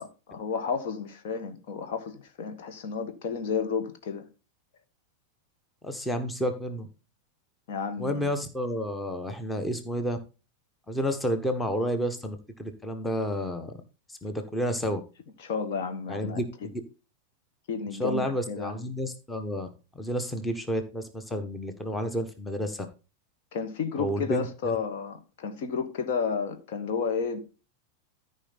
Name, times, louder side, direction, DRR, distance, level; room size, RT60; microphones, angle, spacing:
voice 1, 0.0-4.3 7.7-8.3 15.4-16.4 17.7-18.8 23.5-27.4, left 5 dB, 50° left, 1.6 m, -32 dB
voice 2, 5.8-6.9 8.0-10.2 10.9-13.7 14.1-15.0 16.1-16.7 18.0-19.7 19.9-22.9 24.0-24.8, equal, 10° left, 1.4 m, -30 dB
14.0 x 5.3 x 4.1 m
figure-of-eight pair, 90°, 0 cm